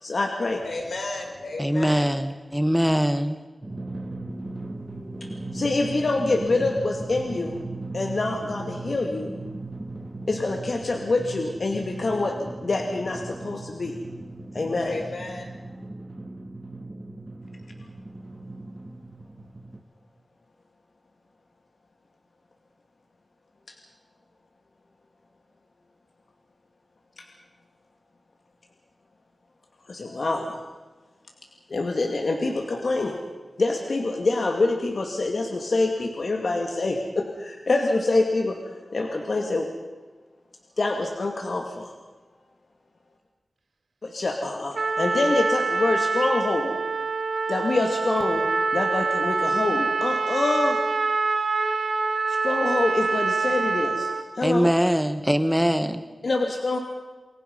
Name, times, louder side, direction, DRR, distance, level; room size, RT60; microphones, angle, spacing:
voice 1, 0.0-0.6 4.3-7.6 7.9-9.3 10.3-14.0 14.5-15.0 27.2-27.3 29.9-30.6 31.7-33.1 33.6-38.6 38.9-39.7 40.8-41.9 44.0-46.8 47.5-50.8 52.3-54.1 54.4-54.7 56.2-56.8, left 2 dB, 60° left, 2 dB, 2.4 m, -26 dB
voice 2, 0.6-2.1 14.7-15.7, left 2 dB, 85° left, 2 dB, 5.3 m, -34 dB
voice 3, 1.6-3.4 54.4-56.0, equal, 5° right, 10 dB, 1.2 m, -22 dB
Drum, 3.6-19.8, right 2 dB, 30° right, 1.8 m, -37 dB
Trumpet, 44.7-54.2, right 4 dB, 75° right, 1.8 m, -25 dB
29.0 x 22.5 x 5.5 m, 1.3 s
wide cardioid pair, 105°, 0 cm